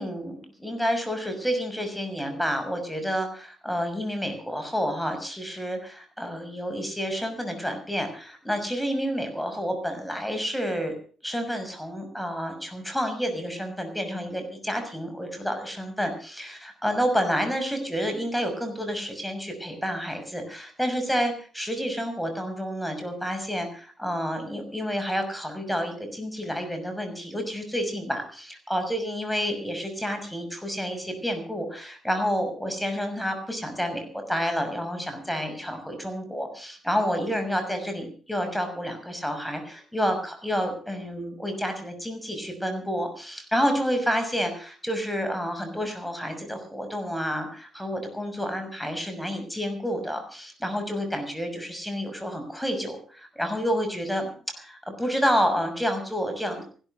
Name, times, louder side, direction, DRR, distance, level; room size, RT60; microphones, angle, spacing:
voice 1, 0.0-10.9 11.2-54.3 54.5-56.6, equal, ahead, 6 dB, 6.3 m, -29 dB
16.0 x 13.0 x 6.5 m, 0.42 s
cardioid pair, 90°, 0 cm